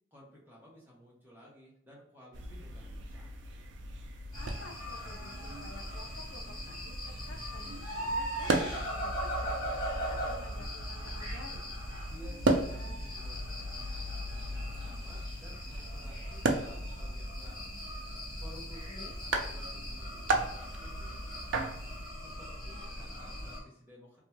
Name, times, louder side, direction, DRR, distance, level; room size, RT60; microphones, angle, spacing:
voice 1, 0.1-3.3 12.1-17.6 18.4-21.7 22.2-24.2, equal, 10° right, -4 dB, 0.8 m, -54 dB
sound 1, 2.3-22.1, right 2 dB, 70° right, 0.4 m, -37 dB
voice 2, 4.3-7.0 7.3-9.1 9.4-11.7 18.9-19.2, left 2 dB, 75° left, 4 dB, 0.5 m, -51 dB
sound 2, 4.3-23.6, equal, 20° left, 1.1 m, -40 dB
2.6 x 2.2 x 3.0 m, 0.74 s
head